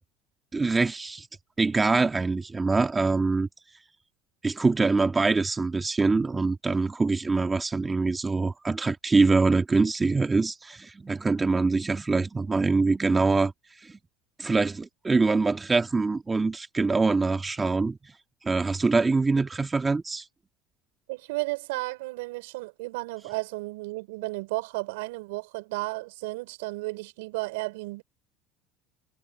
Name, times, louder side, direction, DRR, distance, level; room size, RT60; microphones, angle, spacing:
voice 1, 0.5-1.3 1.6-3.5 4.4-13.5 13.8-13.9 14.4-18.0 18.4-20.3, right 3 dB, 20° right, 2.0 m, -24 dB
voice 2, 21.1-28.0, right 23 dB, 80° right, 5.7 m, -33 dB
supercardioid pair, 90°, 0 cm